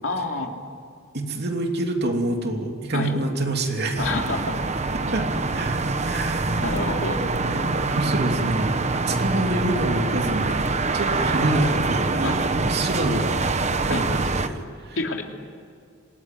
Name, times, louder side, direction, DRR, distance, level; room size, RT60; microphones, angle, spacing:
voice 1, 0.0-0.5 2.9-3.1 4.0-4.6 6.1-6.2 6.6-7.2 12.2-12.5 13.9-14.0 15.0-15.2, left 3 dB, 70° left, 2 dB, 3.0 m, -28 dB
voice 2, 1.1-4.1 5.1-6.5 7.4-13.3 13.8-15.0, right 1 dB, 55° right, 3 dB, 3.0 m, -27 dB
sound 1, 4.0-14.5, right 3 dB, 35° right, 1.1 m, -25 dB
26.5 x 19.5 x 9.3 m, 2.3 s
head